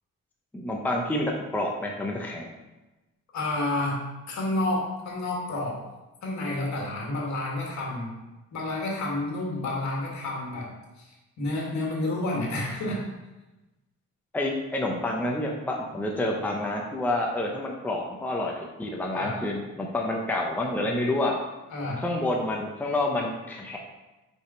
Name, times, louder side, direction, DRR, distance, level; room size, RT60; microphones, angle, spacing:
voice 1, 0.5-2.5 14.3-21.4 22.0-23.8, left 1 dB, 5° left, -1 dB, 0.7 m, -28 dB
voice 2, 3.3-4.0 4.3-5.8 6.2-8.1 8.5-13.0 19.1-19.4 21.7-22.0, left 2 dB, 65° left, -2 dB, 1.9 m, -30 dB
5.4 x 5.0 x 4.4 m, 1.1 s
cardioid pair, 135°, 31 cm